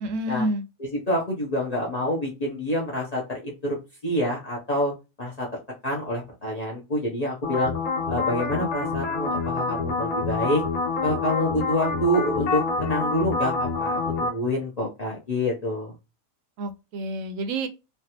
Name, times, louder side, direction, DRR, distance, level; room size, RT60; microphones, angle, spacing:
voice 1, 0.0-0.6 16.6-17.7, right 1 dB, 70° right, 0.9 m, -28 dB
voice 2, 0.8-3.8 4.0-4.9 5.2-5.5 5.8-7.7 8.1-10.6 11.0-15.9, equal, 40° left, 0.6 m, -27 dB
sound 1, 7.4-14.3, left 4 dB, 80° left, 1.4 m, -27 dB
3.2 x 2.4 x 2.8 m
omnidirectional pair, 1.5 m